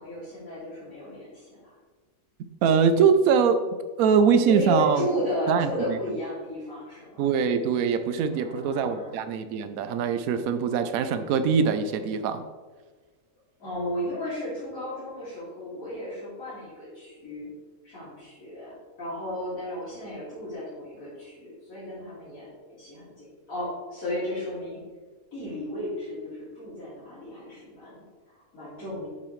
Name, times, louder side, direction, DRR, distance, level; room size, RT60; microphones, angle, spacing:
voice 1, 0.0-1.7 4.5-7.2 8.3-9.1 13.6-17.5 17.8-24.8 25.3-29.1, left 1 dB, 70° left, -11 dB, 3.1 m, -34 dB
voice 2, 2.6-3.6 4.0-5.1 5.5-5.7 7.2-12.4, right 6 dB, 80° right, 9 dB, 1.0 m, -22 dB
7.6 x 7.2 x 3.1 m, 1.4 s
omnidirectional pair, 1.5 m